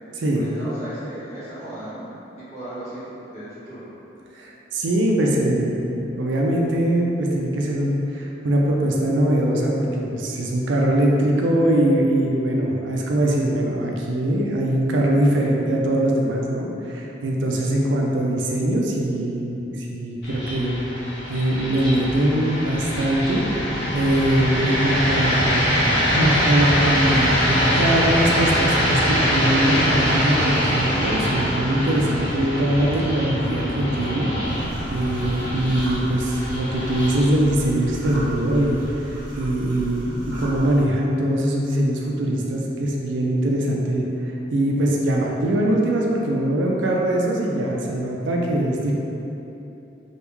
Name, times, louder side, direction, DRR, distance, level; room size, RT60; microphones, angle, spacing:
voice 1, 0.3-2.1 2.4-3.9, right 1 dB, 40° left, -14 dB, 1.5 m, -36 dB
voice 2, 4.4-20.7 21.3-23.4 23.9-25.8 26.1-34.3 34.6-39.1 39.4-48.9, right 1 dB, 80° right, -2 dB, 0.4 m, -22 dB
sound 1, 20.2-39.2, equal, 70° left, 1.1 m, -23 dB
sound 2, 34.4-40.8, right 1 dB, 10° left, 1.4 m, -36 dB
3.4 x 2.3 x 3.0 m, 3.0 s
head